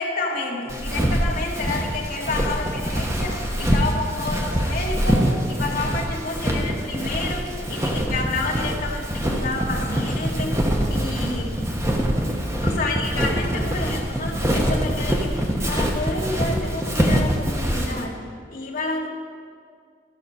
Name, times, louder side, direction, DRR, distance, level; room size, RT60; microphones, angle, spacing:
voice 1, 0.0-5.2 5.5-10.6 10.9-11.5 12.6-18.2 18.5-19.1, left 3 dB, 50° left, -2 dB, 1.7 m, -29 dB
Walk footsteps, 0.7-18.0, equal, 15° right, 1.0 m, -24 dB
14.5 x 5.9 x 5.6 m, 2.1 s
head